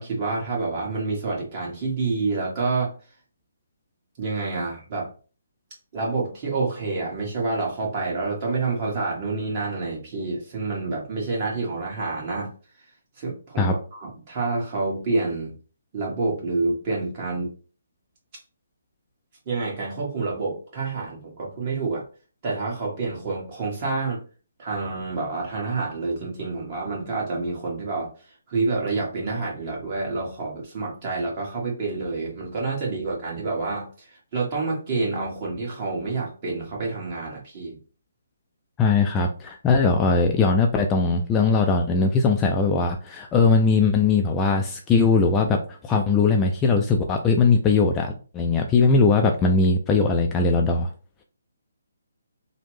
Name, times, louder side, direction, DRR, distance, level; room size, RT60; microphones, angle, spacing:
voice 1, 0.0-2.9 4.2-5.1 5.9-12.5 13.2-15.5 15.9-17.5 19.4-22.0 22.4-24.2 24.6-28.1 28.5-34.1 34.3-37.8, right 3 dB, 35° right, -2 dB, 1.4 m, -28 dB
voice 2, 38.8-50.9, left 4 dB, 15° left, 2 dB, 0.3 m, -20 dB
3.1 x 2.0 x 3.1 m, 0.37 s
figure-of-eight pair, 145°, 0 cm